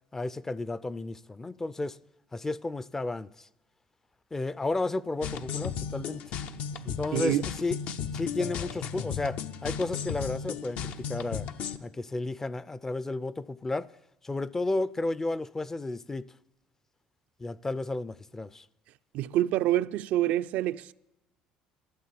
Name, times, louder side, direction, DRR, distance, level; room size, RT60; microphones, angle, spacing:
voice 1, 0.1-2.0 2.3-3.5 4.3-6.2 6.8-7.8 8.1-11.5 11.8-13.9 14.2-16.3 17.4-18.7, left 2 dB, 15° left, 0.4 m, -32 dB
sound 1, 5.2-11.8, left 7 dB, 65° left, 0.6 m, -35 dB
voice 2, 7.1-7.4 19.1-20.9, right 14 dB, 70° right, 0.4 m, -26 dB
12.5 x 7.3 x 8.4 m
supercardioid pair, 100°, 3 cm